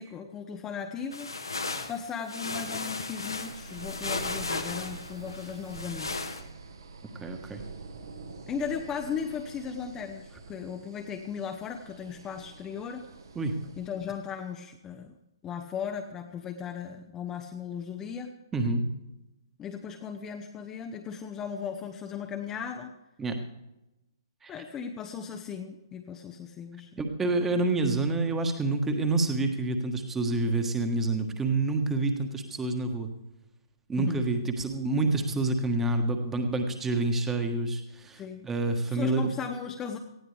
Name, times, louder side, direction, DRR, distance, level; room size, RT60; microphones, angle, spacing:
voice 1, 0.0-1.3 1.9-6.1 8.5-13.1 13.8-15.2 15.4-18.3 19.6-22.9 24.5-27.0 34.0-34.2 38.2-38.5 38.9-40.0, left 7 dB, 15° left, 4 dB, 0.8 m, -37 dB
sound 1, 1.1-6.4, left 3 dB, 75° left, 1.5 m, -35 dB
sound 2, 2.6-14.4, right 3 dB, 60° right, 1.7 m, -46 dB
voice 2, 7.2-7.6 13.3-13.5 18.5-18.8 23.2-23.4 24.4-24.5 27.0-33.1 33.9-39.2, right 2 dB, 10° right, 6 dB, 1.4 m, -28 dB
18.5 x 14.5 x 3.4 m, 0.94 s
figure-of-eight pair, 125°, 2 cm